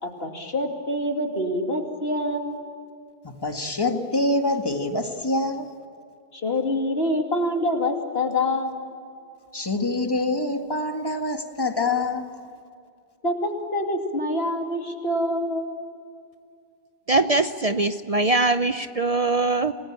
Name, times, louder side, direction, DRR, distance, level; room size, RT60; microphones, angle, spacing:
voice 1, 0.0-2.6 6.3-8.8 13.2-15.7, left 1 dB, 70° left, 3 dB, 2.9 m, -26 dB
voice 2, 3.2-5.7 9.5-12.2, left 2 dB, 20° left, 4 dB, 1.8 m, -25 dB
voice 3, 17.1-19.7, right 2 dB, 40° right, 10 dB, 0.7 m, -22 dB
28.0 x 20.0 x 8.8 m, 2.3 s
omnidirectional pair, 1.1 m